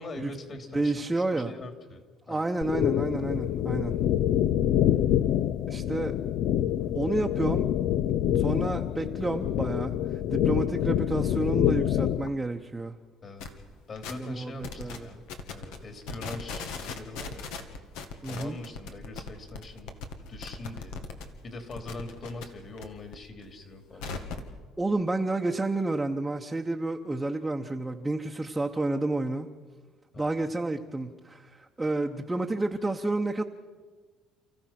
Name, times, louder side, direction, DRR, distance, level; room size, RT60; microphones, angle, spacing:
voice 1, 0.0-2.0 2.3-2.5 13.2-13.5 13.9-15.2 15.5-17.5 18.3-19.9 20.2-21.1 21.4-24.5 30.1-30.3, left 2 dB, 40° left, 5 dB, 3.1 m, -42 dB
voice 2, 0.7-1.5 2.3-3.9 5.7-6.1 6.9-7.7 8.3-12.9 14.1-15.1 18.2-18.6 24.8-29.5 30.2-33.4, right 2 dB, 10° right, 2 dB, 0.9 m, -30 dB
sound 1, 2.6-12.3, left 11 dB, 70° left, 0.5 m, -26 dB
sound 2, 13.4-13.6 14.0-14.3 14.6-15.0 15.3-15.8 16.0-21.2 21.6-22.8 23.1-24.5, left 5 dB, 90° left, 1.9 m, -38 dB
30.0 x 15.0 x 6.0 m, 1.4 s
cardioid pair, 115°, 0 cm